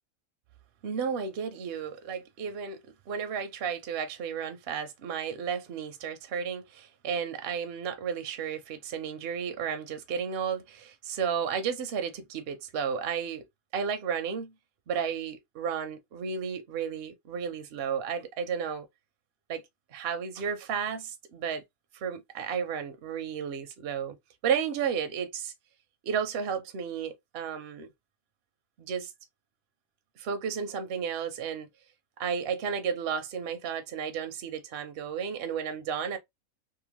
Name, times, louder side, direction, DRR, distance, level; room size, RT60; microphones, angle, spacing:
voice 1, 0.8-13.4 13.7-14.5 14.9-18.9 19.5-19.6 19.9-21.6 21.9-24.2 24.4-25.5 26.0-27.9 28.8-29.1 30.2-31.7 32.2-36.2, right 7 dB, 65° right, 0.6 m, -33 dB
2.8 x 2.1 x 2.8 m
omnidirectional pair, 1.5 m